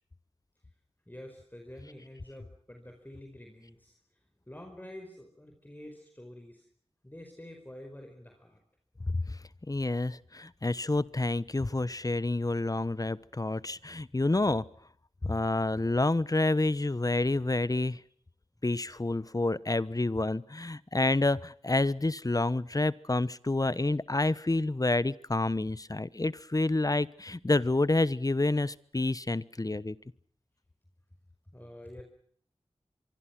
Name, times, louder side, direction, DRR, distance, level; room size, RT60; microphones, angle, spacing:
voice 1, 1.1-4.0 4.5-6.7 7.0-8.6 31.5-32.0, left 1 dB, 15° left, 4 dB, 5.0 m, -48 dB
voice 2, 9.0-9.4 9.7-14.7 15.2-18.0 18.6-30.0, left 2 dB, 35° left, 19 dB, 1.1 m, -28 dB
25.5 x 24.0 x 6.1 m, 0.62 s
wide cardioid pair, 50°, 11 cm